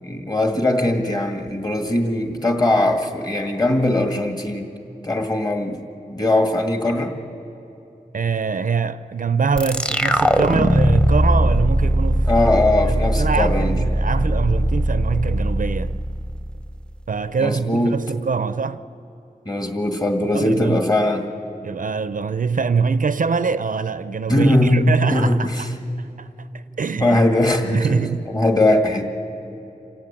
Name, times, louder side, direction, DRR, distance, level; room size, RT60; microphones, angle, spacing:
voice 1, 0.0-4.7 5.0-5.8 6.1-7.1 12.3-13.8 17.4-17.9 19.5-21.2 24.3-25.7 27.0-28.0 28.3-29.1, left 1 dB, 25° left, 2.0 m, -20 dB
voice 2, 8.1-12.3 12.8-16.0 17.1-18.8 20.3-20.8 21.6-25.7 26.0-27.2 27.7-28.3, right 5 dB, 60° right, 0.5 m, -24 dB
sound 1, 9.6-16.8, equal, 5° left, 0.7 m, -20 dB
27.0 x 16.0 x 8.8 m
wide cardioid pair, 85°, 16 cm